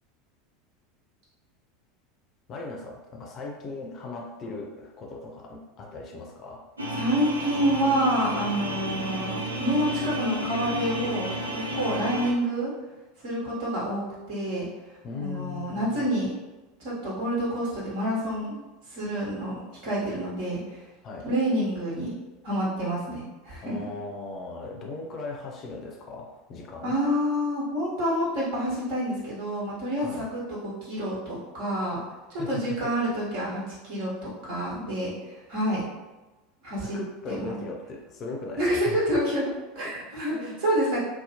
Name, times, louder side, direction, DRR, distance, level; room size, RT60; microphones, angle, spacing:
voice 1, 2.5-6.7 15.0-16.1 21.0-21.3 23.6-27.0 30.0-30.3 32.4-33.0 36.9-39.0 39.8-40.0 40.3-40.6, left 3 dB, 40° left, 0 dB, 0.5 m, -38 dB
sound 1, 6.8-12.3, equal, 85° right, 0.4 m, -31 dB
voice 2, 7.0-12.7 13.2-14.7 15.2-16.4 16.8-20.8 21.2-22.1 22.4-23.7 26.8-32.0 32.3-35.8 36.6-37.0 37.3-37.6 38.6-39.5 39.7-41.0, equal, 60° right, -7 dB, 1.3 m, -28 dB
2.8 x 2.0 x 2.8 m, 1.1 s
figure-of-eight pair, 80°, 0 cm